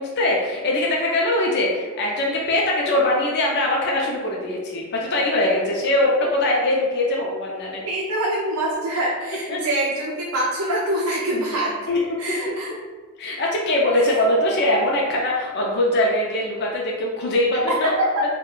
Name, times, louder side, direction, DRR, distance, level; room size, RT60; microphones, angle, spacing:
voice 1, 0.0-7.8 9.3-9.6 11.9-12.0 13.2-17.9, left 1 dB, 50° left, -2 dB, 0.4 m, -22 dB
voice 2, 7.8-11.7 12.2-12.7 13.9-14.2 17.7-18.2, right 1 dB, 85° right, -5 dB, 0.5 m, -24 dB
2.4 x 2.1 x 3.6 m, 1.4 s
head